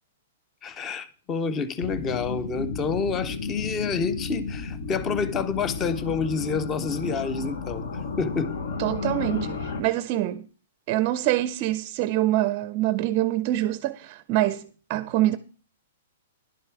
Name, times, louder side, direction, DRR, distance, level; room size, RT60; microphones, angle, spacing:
voice 1, 0.6-7.9 8.2-8.5, left 5 dB, 20° left, 0.6 m, -28 dB
sound 1, 1.8-9.8, left 4 dB, 70° left, 1.3 m, -32 dB
voice 2, 8.8-10.5 10.9-15.4, right 15 dB, 35° right, 0.4 m, -25 dB
11.0 x 6.6 x 4.6 m
hypercardioid pair, 165°, 0 cm